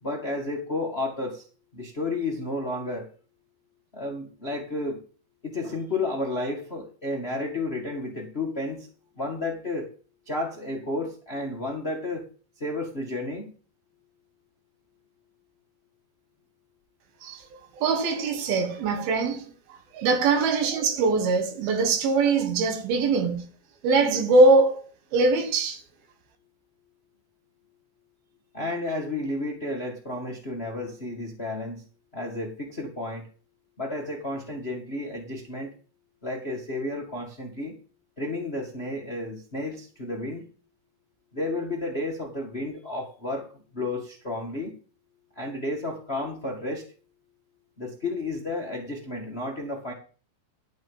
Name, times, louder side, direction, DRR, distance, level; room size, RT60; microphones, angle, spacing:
voice 1, 0.0-1.4 1.7-3.1 3.9-5.0 5.4-8.9 9.1-9.9 10.2-12.3 12.6-13.5 20.3-20.5 28.5-31.8 32.1-33.3 33.8-35.7 36.2-37.7 38.2-40.5 41.3-44.8 45.3-46.8 47.8-49.9, left 2 dB, 40° left, 0.9 m, -32 dB
voice 2, 17.7-19.5 19.9-23.4 23.8-25.8, right 3 dB, 70° right, 3.1 m, -22 dB
12.5 x 5.5 x 7.1 m
omnidirectional pair, 4.6 m